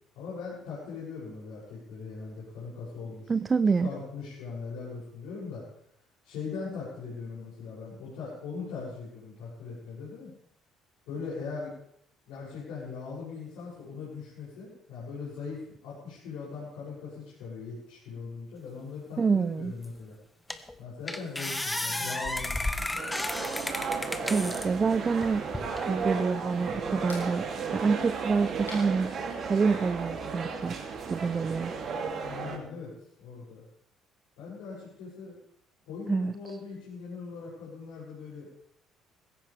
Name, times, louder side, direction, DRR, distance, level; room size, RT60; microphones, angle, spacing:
voice 1, 0.1-3.3 3.6-5.6 6.2-10.3 11.1-11.7 12.3-20.1 20.8-22.9 32.1-32.9 33.2-33.6 34.4-35.4 35.9-38.5, left 4 dB, 65° left, -8 dB, 8.0 m, -40 dB
voice 2, 3.3-3.9 19.2-19.7 24.3-25.5 25.9-27.5 27.7-29.1 29.4-30.8 31.1-31.7 36.1-36.3, right 5 dB, 30° right, 15 dB, 0.5 m, -27 dB
sound 1, 19.8-19.9 20.5-20.7 21.1-24.7 25.2-25.9, left 1 dB, 10° left, 1.6 m, -33 dB
sound 2, 23.0-32.6, right 5 dB, 45° right, 3.2 m, -34 dB
sound 3, 24.8-29.9, left 3 dB, 85° left, 4.2 m, -51 dB
20.0 x 17.0 x 3.7 m, 0.72 s
figure-of-eight pair, 50°, 0 cm